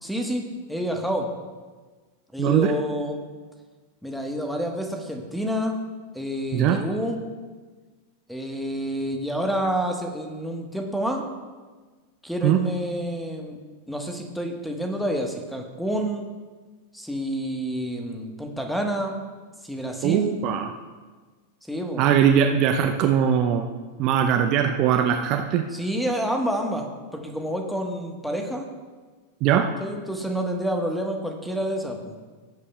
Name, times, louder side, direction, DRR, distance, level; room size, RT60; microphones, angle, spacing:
voice 1, 0.0-1.3 2.3-3.2 4.0-5.8 6.1-7.2 8.3-11.2 12.2-13.6 13.9-16.3 16.9-19.2 19.6-20.4 21.7-22.1 25.7-28.7 29.8-32.2, equal, ahead, 3 dB, 1.3 m, -28 dB
voice 2, 2.4-2.7 6.5-6.8 12.4-12.6 20.0-20.7 22.0-23.7 24.0-25.7 29.4-29.7, right 9 dB, 40° right, 5 dB, 0.6 m, -20 dB
16.5 x 8.3 x 2.3 m, 1.4 s
figure-of-eight pair, 90°, 0 cm